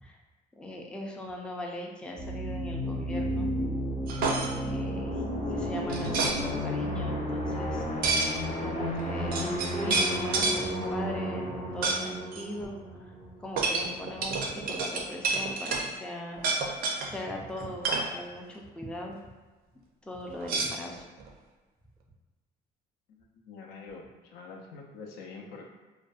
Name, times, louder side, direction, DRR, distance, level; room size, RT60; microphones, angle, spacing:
voice 1, 0.6-3.5 4.5-5.2 5.5-7.8 8.6-13.1 13.4-16.4 17.0-17.8 18.1-19.2 20.0-21.0, left 1 dB, 5° left, 0 dB, 0.3 m, -39 dB
sound 1, 2.2-13.7, equal, 40° left, 0.7 m, -32 dB
sound 2, 4.1-4.5 5.9-6.4 8.0-8.3 9.0-9.1 9.3-10.6 11.8-12.0 12.3-12.4 13.6-15.9 16.4-17.1 17.6-18.1 20.4-21.3, right 3 dB, 60° right, 0.4 m, -28 dB
voice 2, 23.5-24.0 24.3-25.7, left 4 dB, 80° left, 1 dB, 0.5 m, -44 dB
2.5 x 2.1 x 2.3 m, 1.3 s
cardioid pair, 110°, 17 cm